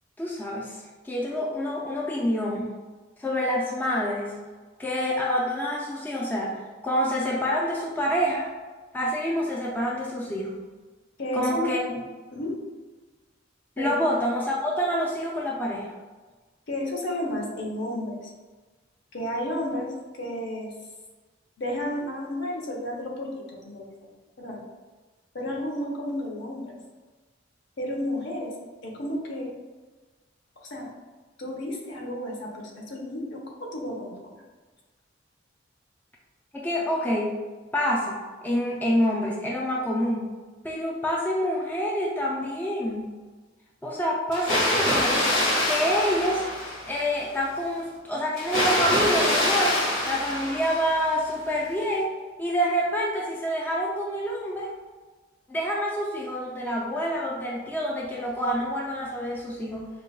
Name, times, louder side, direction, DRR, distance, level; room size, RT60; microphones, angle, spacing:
voice 1, 0.2-2.7 3.2-4.4 4.8-8.5 8.9-10.6 11.3-11.8 13.8-15.9 36.5-37.4 37.7-40.3 40.6-43.2 43.8-45.3 45.7-46.4 46.8-52.1 52.4-54.7 55.5-59.9, equal, 10° left, -3 dB, 0.3 m, -27 dB
voice 2, 11.2-11.8 12.3-12.5 13.8-13.9 16.7-18.3 19.1-20.7 21.6-24.1 24.4-24.6 25.3-26.8 27.8-28.5 28.8-29.5 30.7-30.9 31.4-34.4, left 1 dB, 65° left, -1 dB, 0.8 m, -32 dB
Water, 44.3-47.1 48.4-51.2, left 1 dB, 80° left, 1.1 m, -25 dB
5.0 x 2.2 x 2.3 m, 1.3 s
head